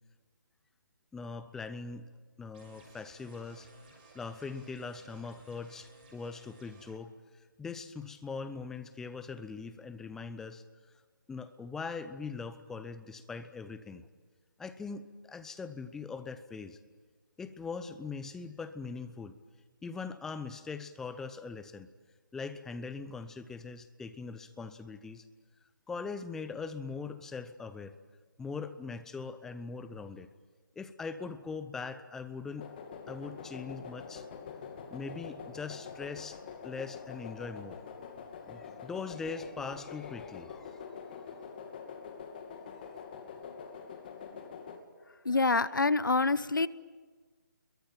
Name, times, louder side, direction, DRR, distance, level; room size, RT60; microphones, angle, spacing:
voice 1, 1.1-2.1 2.4-3.7 4.1-10.6 11.3-14.1 14.6-16.8 17.4-19.3 19.8-21.9 22.3-25.2 25.9-27.9 28.4-30.3 30.8-32.7 33.1-34.3 34.9-37.8 38.5-40.9 41.1-41.3, left 4 dB, 5° left, 11 dB, 0.8 m, -41 dB
sound 1, 2.5-6.9, right 3 dB, 30° right, 6.1 m, -58 dB
sound 2, 32.6-44.8, left 6 dB, 30° left, 2.6 m, -45 dB
voice 2, 45.2-46.7, left 3 dB, 75° left, 18 dB, 1.0 m, -26 dB
29.0 x 22.5 x 9.1 m, 1.5 s
figure-of-eight pair, 155°, 11 cm